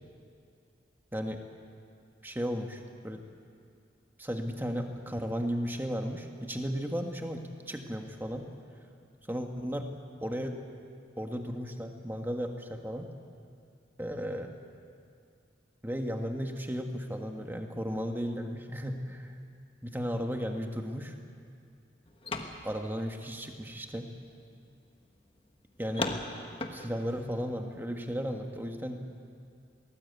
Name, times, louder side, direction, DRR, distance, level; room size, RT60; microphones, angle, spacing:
voice 1, 1.1-1.4 2.2-3.2 4.2-8.5 9.3-9.9 10.2-10.6 11.2-13.1 14.0-14.5 15.8-19.4 19.8-21.1 22.6-24.1 25.8-26.1 26.7-29.0, equal, 10° right, 4 dB, 1.5 m, -35 dB
sound 1, 22.1-23.7 24.4-24.5 25.0-25.1 25.9-27.4, left 2 dB, 30° left, 1.3 m, -37 dB
22.5 x 18.5 x 8.3 m, 2.3 s
head